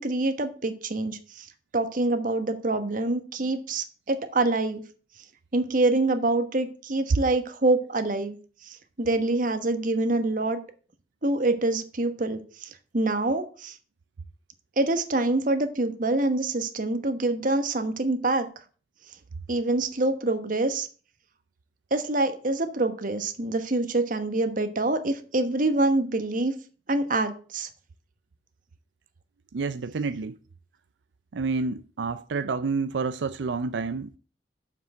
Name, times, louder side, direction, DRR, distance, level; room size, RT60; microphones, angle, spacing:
voice 1, 0.0-1.5 1.7-4.8 5.5-8.4 8.6-10.6 11.2-13.8 14.8-18.5 19.5-20.9 21.9-26.5 26.9-27.7, right 2 dB, 50° right, 1.2 m, -26 dB
voice 2, 29.5-30.4 31.3-34.2, right 4 dB, 90° right, 0.5 m, -29 dB
7.2 x 6.0 x 7.3 m
head